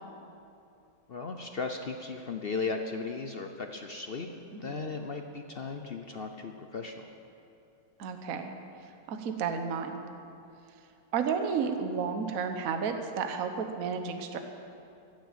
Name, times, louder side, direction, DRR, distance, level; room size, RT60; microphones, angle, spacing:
voice 1, 1.1-4.3 4.6-7.0, left 4 dB, 60° left, 5 dB, 0.6 m, -36 dB
voice 2, 8.0-8.5 9.1-10.0 11.1-14.4, right 6 dB, 55° right, 6 dB, 1.3 m, -32 dB
15.5 x 10.5 x 7.4 m, 2.7 s
omnidirectional pair, 2.0 m